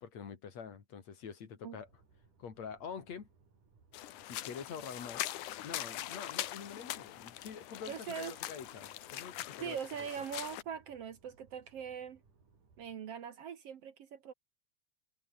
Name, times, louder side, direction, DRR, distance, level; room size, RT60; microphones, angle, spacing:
voice 1, 0.0-1.9 2.4-3.3 4.3-5.2 5.6-10.1, left 6 dB, 60° left, 3.8 m, -46 dB
sound 1, 1.8-12.9, right 4 dB, 90° right, 7.1 m, -67 dB
sound 2, 3.9-10.6, left 14 dB, 80° left, 2.6 m, -42 dB
voice 2, 7.9-8.4 9.6-12.2 12.8-14.3, right 8 dB, 60° right, 2.1 m, -42 dB
omnidirectional pair, 3.5 m